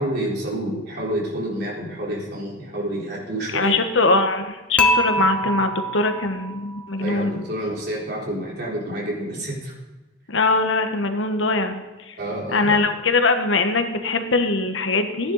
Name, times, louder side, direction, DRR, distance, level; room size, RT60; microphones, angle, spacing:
voice 1, 0.0-3.8 5.2-5.4 7.0-9.7 12.2-12.8, right 1 dB, 60° right, -4 dB, 4.0 m, -28 dB
voice 2, 3.5-7.4 10.3-11.8 12.1-12.2 12.5-15.3, left 3 dB, 80° left, 7 dB, 1.2 m, -21 dB
Dishes pots and pans / Chink clink, 4.8-6.9, equal, 5° left, 0.9 m, -23 dB
15.0 x 10.5 x 4.0 m, 1.2 s
head